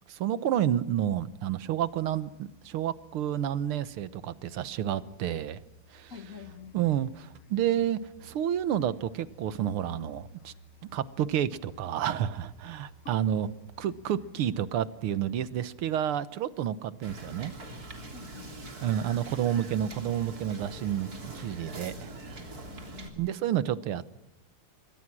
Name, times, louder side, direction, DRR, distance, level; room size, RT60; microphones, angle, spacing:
voice 1, 0.1-5.6 5.9-6.1 6.7-10.5 10.9-13.5 13.8-17.5 18.8-22.1 23.2-24.1, right 10 dB, 80° right, 15 dB, 1.9 m, -30 dB
sound 1, 1.8-14.9, right 3 dB, 15° left, 6.3 m, -62 dB
voice 2, 6.1-6.8 13.0-13.2 18.1-19.0 22.7-23.2, left 6 dB, 40° left, 9 dB, 1.6 m, -47 dB
Musical instrument, 6.4-16.3, left 1 dB, 75° left, 2.0 m, -56 dB
Wind / Boat Water vehicle, 17.0-23.1, right 2 dB, 40° right, 3.7 m, -43 dB
27.5 x 23.0 x 6.2 m, 0.94 s
omnidirectional pair, 2.4 m